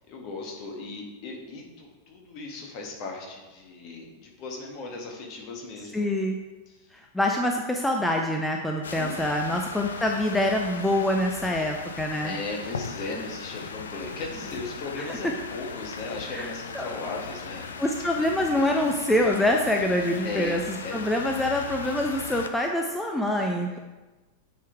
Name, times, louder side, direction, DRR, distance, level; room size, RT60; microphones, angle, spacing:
voice 1, 0.1-6.3 6.7-6.8 9.0-9.6 12.2-17.7 20.2-21.3 23.7-23.8, left 3 dB, 40° left, 0 dB, 1.9 m, -37 dB
voice 2, 5.9-6.4 6.9-12.3 15.0-15.2 16.3-17.0 17.8-20.6 20.9-23.8, left 1 dB, 5° left, 1 dB, 0.7 m, -25 dB
sound 1, 8.8-22.5, left 5 dB, 65° left, 0.6 m, -38 dB
9.3 x 4.7 x 4.6 m, 1.2 s
figure-of-eight pair, 90°, 0 cm